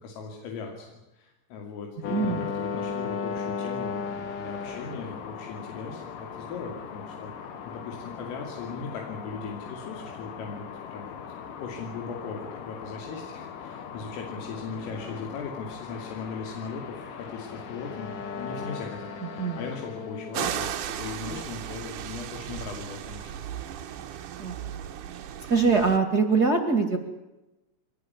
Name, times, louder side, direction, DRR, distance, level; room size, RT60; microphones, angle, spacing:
voice 1, 0.0-11.2 11.6-20.7 21.0-23.3, left 5 dB, 80° left, 2 dB, 5.4 m, -38 dB
sound 1, 2.0-20.5, left 6 dB, 55° left, 2.7 m, -37 dB
voice 2, 2.1-2.5 19.4-19.6 24.4-24.5 25.5-27.0, right 4 dB, 40° right, 5 dB, 1.3 m, -23 dB
sound 2, 20.3-26.0, right 10 dB, 85° right, 1.8 m, -35 dB
24.5 x 19.5 x 9.8 m, 1.0 s
omnidirectional pair, 5.8 m